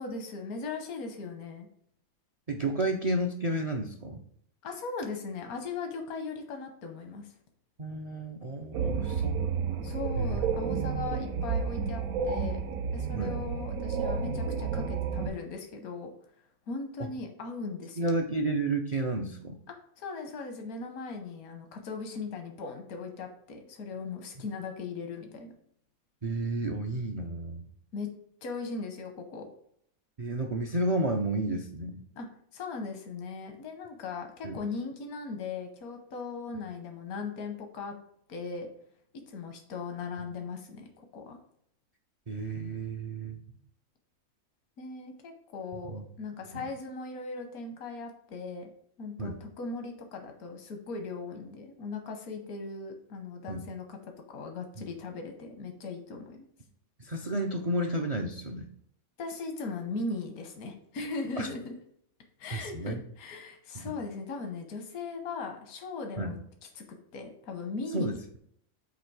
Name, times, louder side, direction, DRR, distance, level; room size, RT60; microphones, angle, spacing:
voice 1, 0.0-1.7 4.6-7.3 9.8-12.6 12.9-16.1 16.7-18.2 19.7-25.5 27.9-28.1 28.4-29.5 32.2-32.3 32.5-37.9 38.3-38.7 39.3-41.4 44.8-48.7 49.0-56.5 59.2-61.7 62.4-66.4 66.7-66.8 67.1-68.2, left 4 dB, 90° left, 4 dB, 1.4 m, -38 dB
voice 2, 2.5-4.2 7.8-9.4 10.2-10.4 13.1-13.4 18.0-19.6 26.2-27.6 30.2-32.0 34.4-34.6 42.3-43.4 45.8-46.0 46.5-46.6 49.2-49.4 53.5-53.6 54.8-54.9 57.0-58.7 61.4-61.5 62.5-63.0 63.7-63.8 66.2-66.4 67.9-68.4, right 2 dB, 55° right, 4 dB, 0.4 m, -31 dB
sound 1, 8.7-15.3, right 5 dB, 75° right, 1.1 m, -31 dB
8.0 x 2.9 x 4.7 m, 0.68 s
omnidirectional pair, 1.5 m